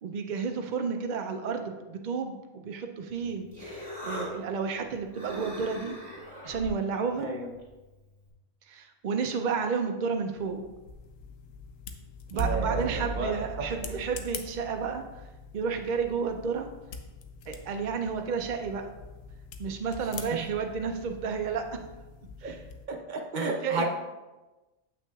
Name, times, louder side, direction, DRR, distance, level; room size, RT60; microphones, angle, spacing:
voice 1, 0.0-3.5 4.0-6.0 6.4-7.3 8.7-10.6 12.3-15.0 15.5-16.7 17.5-18.9 19.6-21.8 22.4-22.6 23.6-23.9, right 5 dB, 80° right, 5 dB, 0.4 m, -31 dB
Human voice, 3.1-8.3, equal, 15° right, 2.2 m, -42 dB
voice 2, 7.2-7.5 12.3-13.9 20.3-20.4 22.4-22.5 22.9-23.9, right 2 dB, 45° right, 2 dB, 0.8 m, -33 dB
sound 1, 10.1-22.9, left 6 dB, 80° left, 1.0 m, -46 dB
sound 2, 12.4-15.3, right 3 dB, 65° right, 1.3 m, -35 dB
8.0 x 5.8 x 2.3 m, 1.1 s
omnidirectional pair, 1.4 m